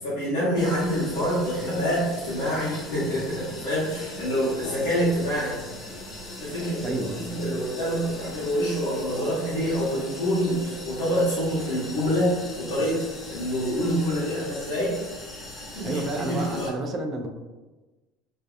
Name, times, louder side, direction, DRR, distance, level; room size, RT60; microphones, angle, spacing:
voice 1, 0.0-5.6 6.4-13.0 13.3-15.0 15.7-16.7, equal, 90° left, -11 dB, 0.9 m, -26 dB
sound 1, 0.6-16.7, left 1 dB, 25° left, 0.8 m, -39 dB
voice 2, 6.8-7.4 15.8-17.3, right 2 dB, 40° right, 4 dB, 0.3 m, -30 dB
2.6 x 2.2 x 2.4 m, 1.2 s
supercardioid pair, 95°, 0 cm